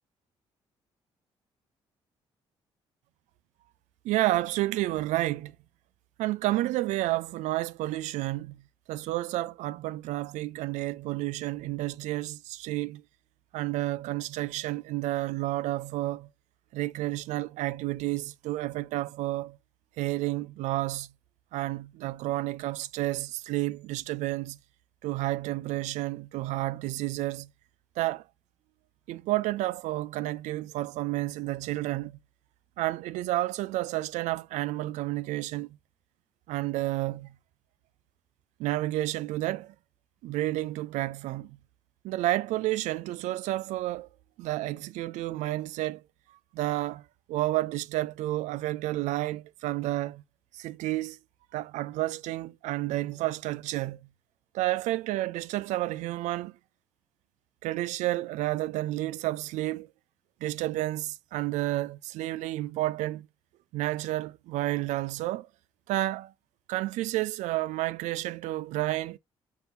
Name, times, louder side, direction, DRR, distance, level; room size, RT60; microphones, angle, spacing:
voice 1, 4.0-5.6 6.2-8.6 8.9-13.0 13.5-16.3 16.7-19.6 20.0-21.1 21.5-24.6 25.0-27.5 28.0-28.2 29.1-32.2 32.8-35.8 36.5-37.4 38.6-39.7 40.2-41.6 42.0-44.1 44.4-46.0 46.5-50.2 50.5-51.2 51.5-54.1 54.5-56.5 57.6-59.9 60.4-63.3 63.7-65.5 65.9-66.3 66.7-69.2, right 16 dB, 75° right, 0.4 m, -30 dB
4.2 x 3.6 x 2.6 m
hypercardioid pair, 50°, 12 cm